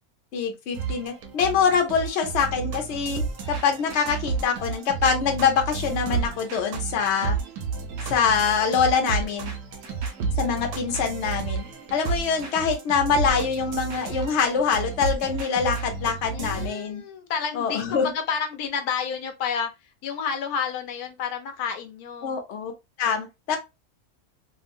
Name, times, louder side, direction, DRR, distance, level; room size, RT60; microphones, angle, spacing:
voice 1, 0.3-3.2 3.5-7.4 8.1-9.6 10.4-11.6 11.9-17.0 17.5-18.1 22.2-22.7 23.0-23.6, left 6 dB, 55° left, 0.9 m, -24 dB
sound 1, 0.7-16.7, right 6 dB, 80° right, 1.2 m, -34 dB
sound 2, 2.2-5.4 5.7-6.6 6.9-7.0 7.2-12.5 12.8-12.9 13.1-15.9, right 4 dB, 65° right, 0.9 m, -33 dB
voice 2, 16.3-19.7 20.0-22.4, left 6 dB, 85° left, 1.2 m, -30 dB
2.8 x 2.7 x 2.5 m
omnidirectional pair, 1.6 m